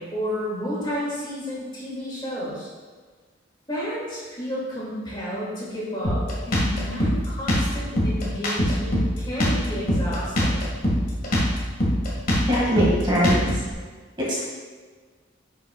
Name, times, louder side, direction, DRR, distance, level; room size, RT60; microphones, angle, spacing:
voice 1, 0.0-2.7 3.7-10.7, equal, 25° left, -7 dB, 2.3 m, -31 dB
Drum kit, 6.0-13.7, equal, 45° left, 1.9 m, -23 dB
voice 2, 12.4-13.6 14.2-14.4, equal, 25° right, -6 dB, 2.0 m, -22 dB
10.5 x 6.8 x 2.4 m, 1.5 s
head